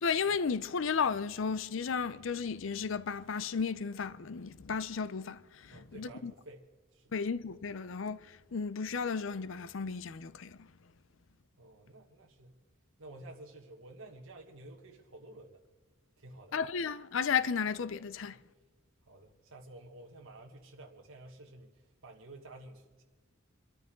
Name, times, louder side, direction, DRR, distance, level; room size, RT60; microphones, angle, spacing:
voice 1, 0.0-6.3 7.1-10.7 16.5-18.4, left 6 dB, 65° left, 0.5 m, -34 dB
voice 2, 5.7-6.7 6.9-7.1 11.6-12.6 13.0-15.6 16.2-16.5 18.2-18.4 19.0-23.0, right 2 dB, 75° right, 1.4 m, -52 dB
27.0 x 13.0 x 3.8 m
head